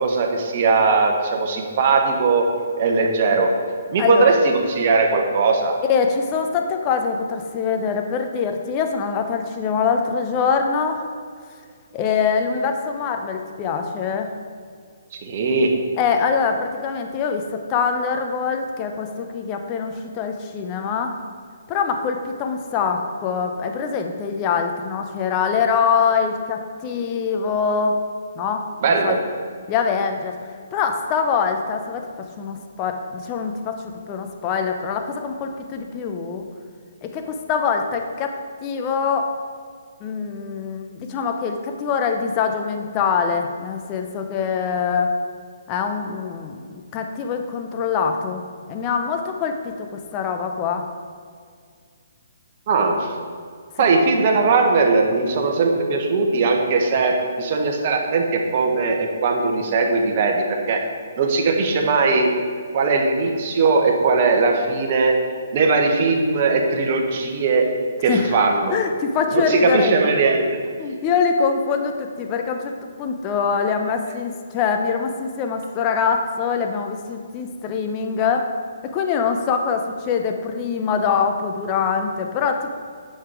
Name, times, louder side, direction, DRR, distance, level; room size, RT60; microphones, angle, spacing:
voice 1, 0.0-2.5 2.8-3.5 3.9-5.7 15.2-15.8 28.8-29.2 52.7-53.1 53.8-60.8 61.2-62.3 62.7-65.2 65.5-67.7 68.0-68.8 69.3-70.5, right 4 dB, 45° right, 2 dB, 1.3 m, -19 dB
voice 2, 4.0-4.3 5.9-11.1 11.9-14.3 16.0-21.2 21.7-28.0 28.3-29.2 29.7-30.4 30.7-32.1 32.4-36.5 37.0-39.3 40.0-45.1 45.7-50.9 53.7-53.8 68.1-68.3 68.7-69.9 70.8-78.5 78.8-82.7, left 6 dB, 30° left, 4 dB, 0.9 m, -24 dB
8.9 x 5.8 x 4.8 m, 2.1 s
figure-of-eight pair, 135°, 0 cm